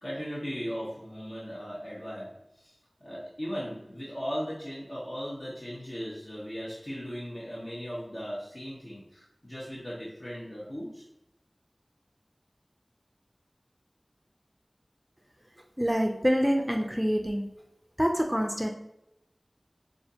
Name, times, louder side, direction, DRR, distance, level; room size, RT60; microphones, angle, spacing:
voice 1, 0.0-11.0, equal, 55° left, -8 dB, 1.1 m, -38 dB
voice 2, 15.8-17.5 18.0-18.7, equal, 10° right, 3 dB, 0.5 m, -26 dB
5.3 x 2.5 x 2.8 m, 0.83 s
wide cardioid pair, 40°, 0 cm